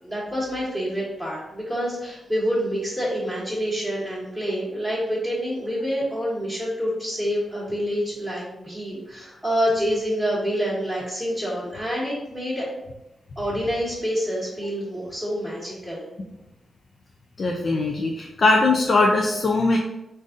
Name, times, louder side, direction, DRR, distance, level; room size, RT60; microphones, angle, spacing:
voice 1, 0.0-12.7 13.3-16.1, equal, 5° left, -8 dB, 1.3 m, -27 dB
voice 2, 17.4-19.8, left 2 dB, 45° left, 0 dB, 0.5 m, -20 dB
3.9 x 2.6 x 3.7 m, 0.92 s
wide cardioid pair, 105°, 0 cm